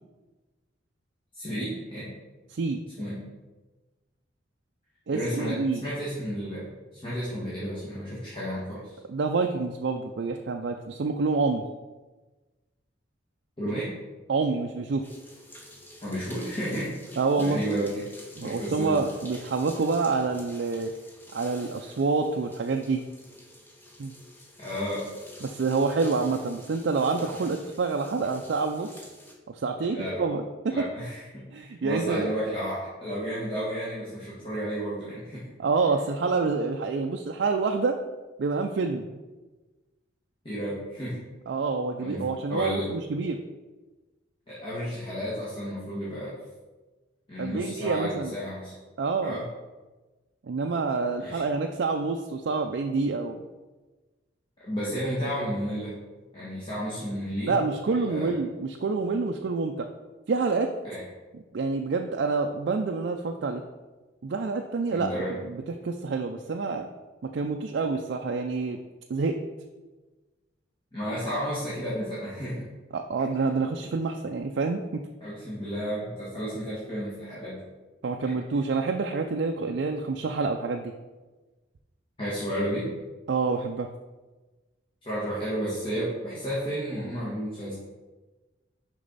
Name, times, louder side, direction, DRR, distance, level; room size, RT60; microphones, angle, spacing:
voice 1, 1.3-2.1 3.0-3.2 5.1-5.6 5.8-9.0 13.6-13.9 16.0-18.0 18.4-19.0 24.6-25.1 29.9-30.2 30.7-35.4 40.4-41.1 42.0-42.2 42.5-42.9 44.5-46.3 47.3-48.7 49.2-49.5 51.2-51.5 54.6-55.9 56.3-57.6 57.9-58.3 60.8-61.0 64.9-65.3 70.9-72.6 75.2-77.6 78.2-78.3 82.2-82.9 85.0-87.7, equal, 25° left, -9 dB, 1.6 m, -32 dB
voice 2, 5.1-5.8 9.1-11.6 14.3-15.0 17.2-17.6 18.4-20.9 21.3-23.0 24.0-24.1 25.4-28.9 29.5-30.8 31.5-32.3 35.6-38.0 38.4-39.2 41.5-43.4 47.4-48.3 49.0-49.4 50.5-53.4 57.5-59.9 60.3-60.7 61.5-63.6 64.2-65.1 65.5-66.9 67.3-68.8 69.1-69.4 72.9-75.0 78.0-80.9 83.3-83.9, right 4 dB, 60° right, 3 dB, 0.4 m, -27 dB
sound 1, 15.0-29.3, left 1 dB, 10° left, 0.8 m, -48 dB
6.5 x 5.3 x 4.0 m, 1.2 s
head